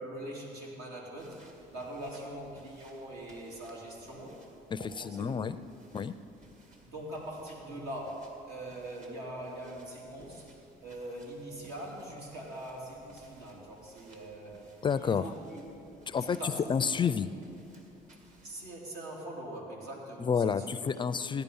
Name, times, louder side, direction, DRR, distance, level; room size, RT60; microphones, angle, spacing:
voice 1, 0.0-4.4 4.8-5.4 6.8-10.5 10.8-15.6 16.2-16.7 18.4-20.8, right 1 dB, 75° right, -2 dB, 3.4 m, -42 dB
sound 1, 1.2-18.8, right 1 dB, 45° right, 2.3 m, -60 dB
voice 2, 4.7-5.6 5.9-6.1 14.8-15.2 16.1-17.3 20.2-21.4, left 6 dB, 30° left, 13 dB, 0.4 m, -30 dB
16.5 x 10.5 x 5.5 m, 2.7 s
cardioid pair, 110°, 17 cm